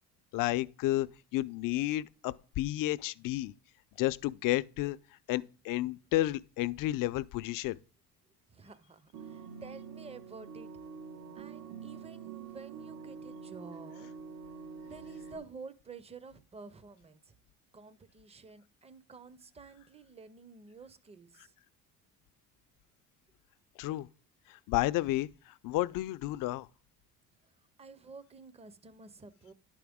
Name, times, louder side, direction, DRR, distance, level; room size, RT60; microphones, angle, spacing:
voice 1, 0.3-3.5 4.0-5.0 5.3-7.8 23.8-24.1 24.7-25.3 25.6-26.7, left 16 dB, 65° left, 0.5 m, -31 dB
voice 2, 8.5-10.7 11.3-14.1 14.5-17.3 17.7-21.5 27.8-29.5, right 4 dB, 15° right, 0.6 m, -51 dB
sound 1, 9.1-15.4, right 6 dB, 80° right, 1.3 m, -46 dB
10.5 x 5.0 x 3.5 m
cardioid pair, 100°, 36 cm